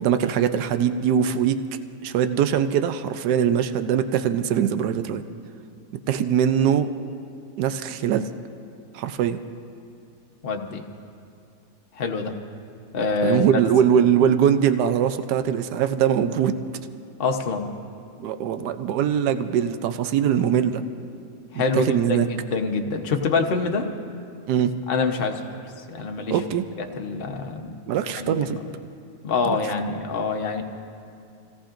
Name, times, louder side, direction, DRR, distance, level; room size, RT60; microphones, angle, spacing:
voice 1, 0.0-1.6 2.0-5.2 6.1-6.9 7.6-8.3 8.9-9.4 13.2-16.6 18.2-20.8 21.5-22.3 24.5-24.8 26.3-26.6 27.9-28.6 29.4-29.6, right 9 dB, 85° right, 9 dB, 1.2 m, -22 dB
voice 2, 10.4-10.8 11.9-12.3 12.9-13.4 17.2-17.7 21.5-23.9 24.9-25.4 25.9-26.4 26.8-27.8 28.2-28.5 29.2-30.6, left 4 dB, 40° left, 3 dB, 1.0 m, -25 dB
27.5 x 17.5 x 2.5 m, 2.4 s
omnidirectional pair, 1.7 m